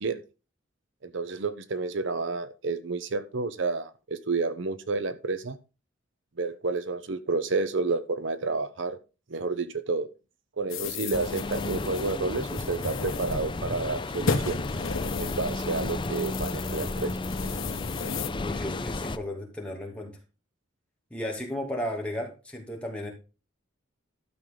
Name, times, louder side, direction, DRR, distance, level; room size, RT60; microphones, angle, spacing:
voice 1, 1.0-5.6 6.4-9.0 9.3-10.1 10.6-14.6 15.2-17.1, right 3 dB, 65° right, 0.7 m, -30 dB
sound 1, 10.7-18.3, left 4 dB, 80° left, 1.2 m, -35 dB
sound 2, 11.1-19.2, left 2 dB, 25° left, 0.5 m, -33 dB
voice 2, 18.4-20.2 21.1-23.1, left 1 dB, 5° left, 2.5 m, -34 dB
12.0 x 6.4 x 3.8 m
head